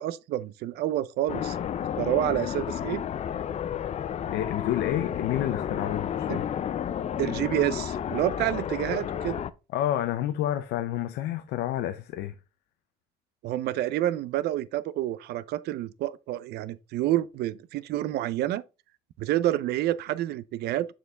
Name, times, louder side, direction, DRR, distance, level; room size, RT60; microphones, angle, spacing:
voice 1, 0.0-1.6 2.0-3.1 6.3-6.4 7.2-9.4 13.4-18.6 19.2-20.9, right 13 dB, 75° right, 0.5 m, -28 dB
sound 1, 1.3-9.5, left 9 dB, 40° left, 0.5 m, -31 dB
voice 2, 4.3-6.4 9.7-12.3, left 12 dB, 85° left, 0.6 m, -29 dB
6.8 x 4.6 x 3.5 m
cardioid pair, 110°, 17 cm